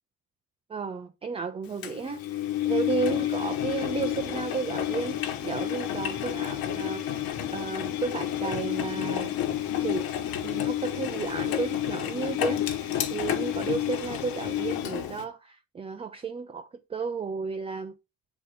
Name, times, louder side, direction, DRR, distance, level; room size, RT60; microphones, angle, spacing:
voice 1, 0.7-2.2 2.6-7.2 7.5-9.3 9.8-10.1 10.4-17.9, right 5 dB, 15° right, 0.4 m, -33 dB
Engine, 1.8-15.2, left 11 dB, 70° left, 1.3 m, -30 dB
7.8 x 4.3 x 5.0 m
cardioid pair, 165°, 36 cm